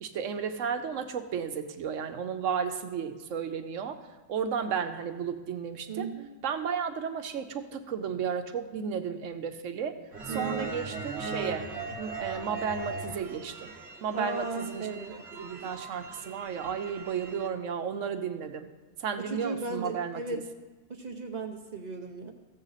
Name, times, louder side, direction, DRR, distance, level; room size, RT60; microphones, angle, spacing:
voice 1, 0.0-4.0 4.3-6.1 6.4-10.0 10.3-11.7 12.0-13.7 14.0-14.9 15.3-18.7 19.0-20.4, right 7 dB, 85° right, 8 dB, 1.1 m, -33 dB
voice 2, 5.9-6.3 10.3-10.7 14.1-15.2 19.2-20.5 20.9-22.3, right 3 dB, 40° right, 3 dB, 0.8 m, -36 dB
sound 1, 10.1-17.5, right 3 dB, 60° right, 1.3 m, -39 dB
15.0 x 7.4 x 4.0 m, 1.2 s
omnidirectional pair, 1.3 m